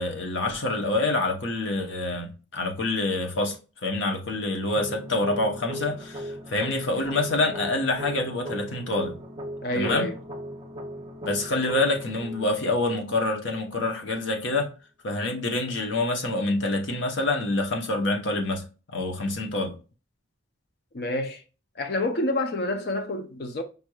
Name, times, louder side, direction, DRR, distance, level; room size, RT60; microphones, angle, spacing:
voice 1, 0.0-3.6 3.8-9.2 9.7-10.1 11.2-14.7 15.0-18.6 18.9-19.7, left 2 dB, 80° left, 1.0 m, -26 dB
sound 1, 4.8-13.7, equal, 25° right, 0.5 m, -38 dB
voice 2, 9.6-10.2 20.9-21.4 21.8-23.6, left 1 dB, 55° left, 0.5 m, -28 dB
5.3 x 3.1 x 2.3 m
head